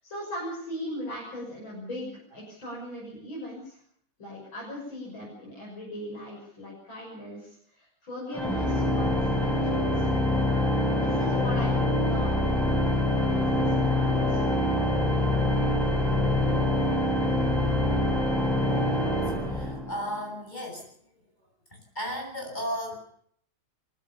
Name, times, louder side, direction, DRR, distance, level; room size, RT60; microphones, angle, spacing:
voice 1, 0.0-3.8 4.2-10.1 10.9-12.8 13.2-14.4, equal, 80° left, -4 dB, 7.6 m, -39 dB
Organ, 8.3-20.1, left 1 dB, ahead, 4.6 m, -25 dB
voice 2, 19.5-20.9 21.7-22.9, equal, 20° left, 0 dB, 8.3 m, -34 dB
24.5 x 16.0 x 7.1 m, 0.64 s
omnidirectional pair, 2.2 m